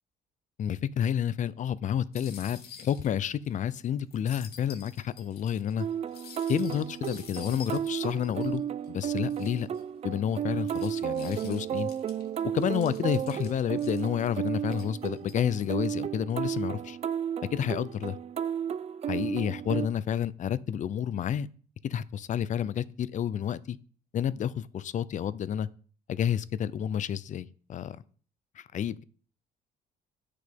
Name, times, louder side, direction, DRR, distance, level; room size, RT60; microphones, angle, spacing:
voice 1, 0.6-5.9 6.5-8.6 8.9-9.7 10.0-11.9 12.5-17.0 17.5-18.2 19.1-21.5 21.8-23.8 24.1-25.7 26.1-28.0 28.6-29.0, left 9 dB, 45° left, 0.6 m, -30 dB
sound 1, 2.1-3.5 3.8-3.9 4.1-8.9 9.3-9.8 10.4-14.3 14.7-15.7, left 7 dB, 65° left, 2.2 m, -50 dB
sound 2, 5.8-19.9, right 9 dB, 40° right, 0.5 m, -33 dB
9.7 x 6.7 x 5.3 m
cardioid pair, 110°, 17 cm